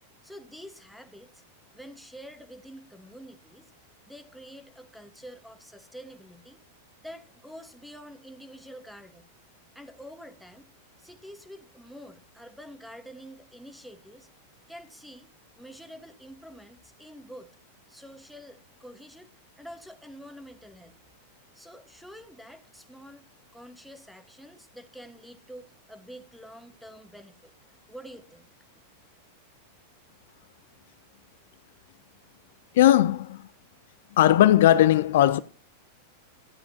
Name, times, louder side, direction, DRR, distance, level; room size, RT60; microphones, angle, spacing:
voice 1, 0.2-1.4 1.7-3.7 4.0-6.6 7.0-9.3 9.7-10.7 11.0-14.3 14.7-15.3 15.6-17.5 17.9-19.3 19.6-21.0 21.5-23.3 23.5-28.5, equal, ahead, 1.2 m, -47 dB
voice 2, 32.7-33.5 34.2-35.4, left 12 dB, 65° left, 0.4 m, -18 dB
13.0 x 9.4 x 2.7 m
hypercardioid pair, 95°, 0 cm